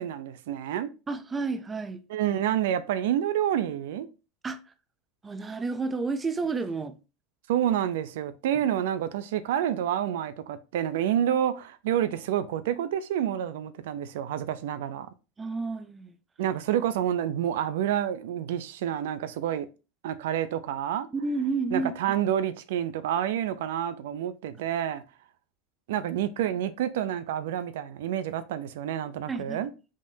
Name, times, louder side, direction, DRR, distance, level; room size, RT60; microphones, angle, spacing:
voice 1, 0.0-0.9 2.1-4.1 7.5-15.1 16.4-19.7 20.0-21.1 21.7-25.0 25.9-29.7, right 10 dB, 80° right, 0.6 m, -28 dB
voice 2, 1.1-2.0 4.4-4.6 5.2-7.0 8.5-8.6 15.4-16.1 21.1-21.9 29.3-29.6, right 4 dB, 20° right, 0.6 m, -30 dB
5.1 x 3.6 x 2.7 m
supercardioid pair, 110°, 0 cm